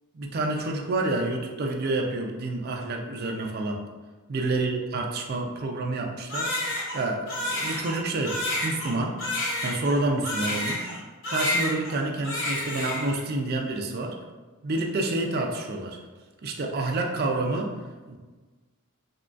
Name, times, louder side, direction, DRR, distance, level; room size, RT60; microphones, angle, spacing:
voice 1, 0.1-3.8 4.3-9.2 9.6-10.9 11.3-14.2 14.6-16.0 16.4-17.8 18.1-18.2, right 2 dB, 45° right, 2 dB, 0.4 m, -28 dB
Crying sobbing, 6.3-11.0 11.2-12.0 12.2-13.2, left 1 dB, 60° left, 0.8 m, -29 dB
3.6 x 2.2 x 2.4 m, 1.3 s
head